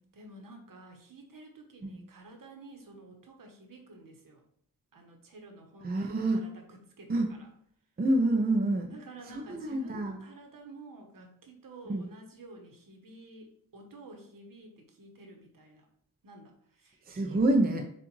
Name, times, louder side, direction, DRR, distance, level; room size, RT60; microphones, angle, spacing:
voice 1, 0.1-4.4 4.9-7.5 8.9-15.9 16.2-17.4, right 2 dB, 60° right, 3 dB, 1.0 m, -51 dB
voice 2, 5.8-6.4 7.1-7.3 8.0-8.9 9.3-10.2 11.9-12.0 17.1-17.8, right 2 dB, 25° right, 3 dB, 0.5 m, -27 dB
7.2 x 2.4 x 3.0 m, 0.64 s
wide cardioid pair, 125°, 37 cm